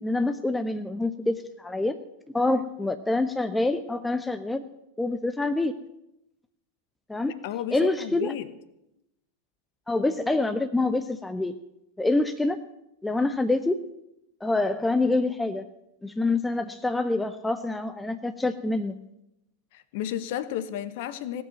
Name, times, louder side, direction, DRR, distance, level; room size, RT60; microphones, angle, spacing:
voice 1, 0.0-1.9 2.3-4.6 5.0-5.7 7.1-7.3 7.7-8.3 9.9-11.5 12.0-12.6 13.0-13.8 14.4-15.7 16.0-18.9, left 2 dB, 5° left, 9 dB, 0.7 m, -26 dB
voice 2, 7.4-8.5 19.7-21.4, left 11 dB, 50° left, 14 dB, 1.2 m, -32 dB
17.0 x 8.1 x 8.9 m, 0.86 s
figure-of-eight pair, 90°, 0 cm